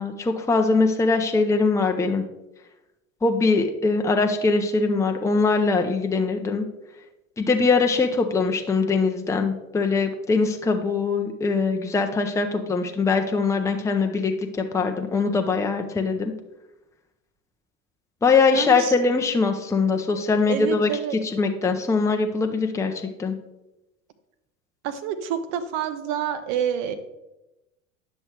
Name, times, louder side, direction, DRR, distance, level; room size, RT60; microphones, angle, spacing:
voice 1, 0.0-2.2 3.2-6.6 7.4-14.3 14.7-16.3 18.2-20.9 21.3-22.9 23.2-23.3, left 4 dB, 5° left, 4 dB, 0.6 m, -22 dB
voice 2, 18.5-18.9 20.5-21.2 24.8-27.0, right 9 dB, 60° right, 10 dB, 1.0 m, -28 dB
9.6 x 6.3 x 3.3 m, 0.96 s
hypercardioid pair, 80°, 40 cm